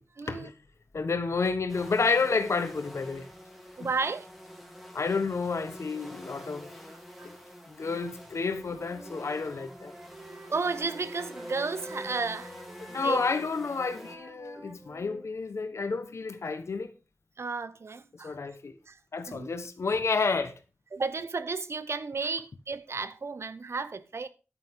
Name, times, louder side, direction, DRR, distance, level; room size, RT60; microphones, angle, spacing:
voice 1, 0.2-0.5 3.8-4.3 7.2-7.3 10.5-12.5 13.0-13.3 17.4-18.4 18.9-19.0 19.3-19.5 20.9-24.3, right 4 dB, 65° right, 0.8 m, -33 dB
voice 2, 0.9-3.3 3.8-3.9 4.9-6.7 7.2-7.4 7.7-9.9 12.9-16.9 18.1-18.8 19.1-20.6, left 4 dB, 75° left, 1.3 m, -30 dB
sound 1, 1.7-14.2, equal, ahead, 3.4 m, -47 dB
Wind instrument woodwind instrument, 8.5-15.3, right 1 dB, 45° right, 3.0 m, -48 dB
10.5 x 9.3 x 3.8 m
cardioid pair, 45°, 5 cm